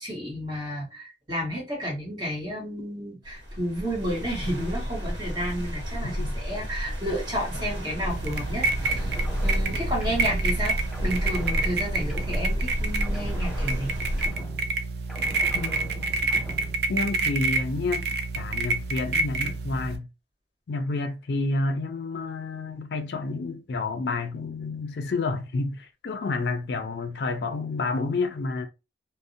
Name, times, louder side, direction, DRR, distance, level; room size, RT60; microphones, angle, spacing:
voice 1, 0.0-9.1 9.4-10.8 11.0-13.9, equal, 25° right, 1.2 m, -31 dB
sound 1, 3.2-14.3, equal, 85° right, 0.9 m, -31 dB
voice 2, 6.0-6.3 15.5-16.1 16.9-18.1 18.4-20.1 20.7-28.7, left 3 dB, 65° left, 0.4 m, -29 dB
sound 2, 8.1-20.0, right 3 dB, 65° right, 0.4 m, -28 dB
sound 3, 8.8-10.7 10.9-12.8 13.0-14.8 15.1-16.8, equal, ahead, 0.5 m, -40 dB
2.5 x 2.0 x 2.6 m
head